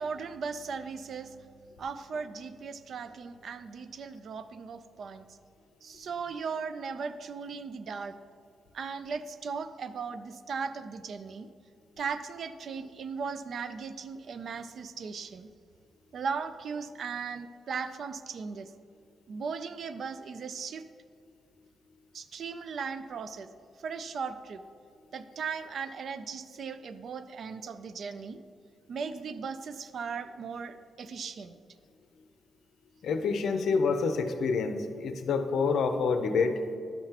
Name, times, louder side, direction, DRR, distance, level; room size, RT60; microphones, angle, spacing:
voice 1, 0.0-1.5 1.8-5.4 5.8-8.2 8.7-11.5 12.0-15.5 16.1-18.7 19.3-20.8 22.1-23.5 23.8-24.6 25.1-28.4 28.9-31.6, right 5 dB, 55° right, 11 dB, 0.4 m, -37 dB
voice 2, 33.0-36.6, left 4 dB, 70° left, 7 dB, 0.6 m, -27 dB
12.0 x 5.8 x 2.9 m, 2.3 s
wide cardioid pair, 145°, 0 cm